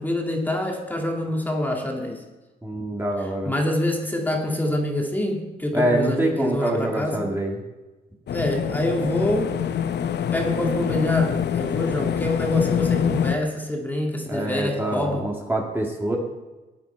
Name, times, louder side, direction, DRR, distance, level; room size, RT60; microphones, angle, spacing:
voice 1, 0.0-2.2 3.4-7.4 8.3-9.6 10.3-15.2, left 1 dB, 10° left, 0 dB, 2.1 m, -26 dB
voice 2, 2.6-3.5 5.7-7.6 9.0-9.1 14.3-16.2, right 1 dB, 10° right, -1 dB, 1.9 m, -25 dB
sound 1, 8.3-13.4, left 8 dB, 60° left, 0.7 m, -25 dB
13.5 x 9.3 x 4.4 m, 1.2 s
cardioid pair, 90°, 20 cm